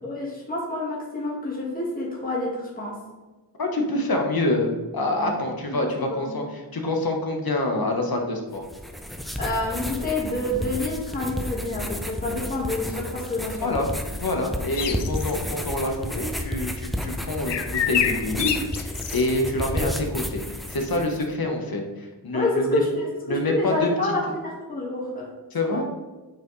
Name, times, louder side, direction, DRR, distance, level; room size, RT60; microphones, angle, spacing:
voice 1, 0.0-3.0 5.2-6.3 9.4-13.7 14.8-14.9 22.3-23.0 23.3-25.3 25.7-25.8, left 2 dB, 20° left, -5 dB, 1.6 m, -28 dB
voice 2, 3.6-8.6 13.6-22.8 23.3-24.1 25.5-25.8, left 1 dB, 55° left, 2 dB, 1.2 m, -26 dB
sound 1, 8.5-21.3, left 1 dB, ahead, 0.5 m, -32 dB
sound 2, 14.8-15.4 17.5-19.2, left 8 dB, 75° left, 0.6 m, -26 dB
8.1 x 4.5 x 3.2 m, 1.2 s
wide cardioid pair, 80°, 42 cm